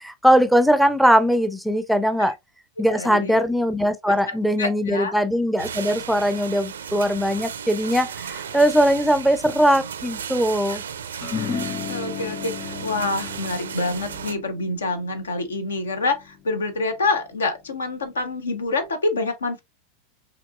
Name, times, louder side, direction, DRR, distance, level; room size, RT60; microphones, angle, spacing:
voice 1, 0.0-2.3 2.8-10.8, equal, ahead, 0.5 m, -20 dB
voice 2, 2.9-3.4 4.1-5.2 10.7-10.8 11.4-19.6, left 3 dB, 75° left, 0.8 m, -27 dB
sound 1, 5.6-14.3, right 7 dB, 70° right, 0.4 m, -35 dB
sound 2, 11.2-17.8, left 7 dB, 30° left, 1.7 m, -35 dB
5.1 x 2.9 x 2.3 m
figure-of-eight pair, 85°, 0 cm